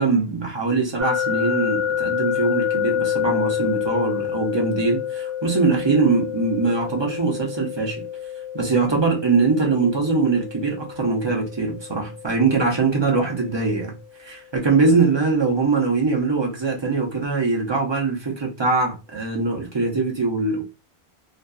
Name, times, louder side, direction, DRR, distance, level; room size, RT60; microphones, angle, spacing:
voice 1, 0.0-8.0 8.5-13.9 14.2-20.6, right 4 dB, 30° right, 0.7 m, -22 dB
sound 1, 1.0-13.9, left 9 dB, 65° right, 0.9 m, -28 dB
2.6 x 2.3 x 2.3 m
omnidirectional pair, 1.1 m